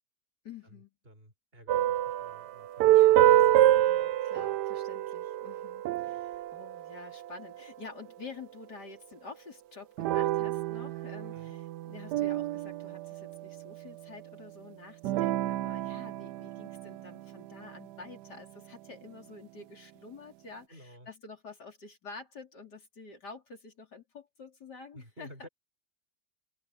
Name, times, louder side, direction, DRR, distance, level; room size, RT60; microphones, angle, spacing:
voice 1, 0.4-0.9 2.9-25.5, left 4 dB, 70° left, 4.2 m, -49 dB
voice 2, 1.1-3.3 11.3-11.6 15.1-15.4 20.7-21.1 24.9-25.5, equal, 30° right, 6.1 m, -52 dB
sound 1, 1.7-7.6 10.0-13.8 15.0-17.7, right 13 dB, 75° right, 1.1 m, -27 dB
omnidirectional pair, 1.9 m